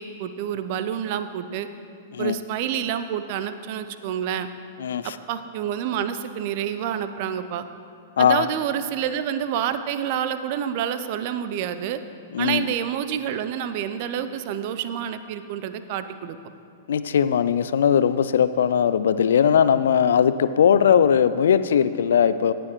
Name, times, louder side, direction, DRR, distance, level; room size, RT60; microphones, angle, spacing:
voice 1, 0.0-1.7 2.2-4.5 5.0-7.6 8.2-12.0 12.4-16.4, right 9 dB, 50° right, 11 dB, 0.5 m, -28 dB
voice 2, 4.8-5.1 8.2-8.5 12.3-12.7 16.9-22.5, left 8 dB, 65° left, 14 dB, 0.3 m, -19 dB
17.5 x 6.9 x 3.1 m, 2.4 s
figure-of-eight pair, 100°, 0 cm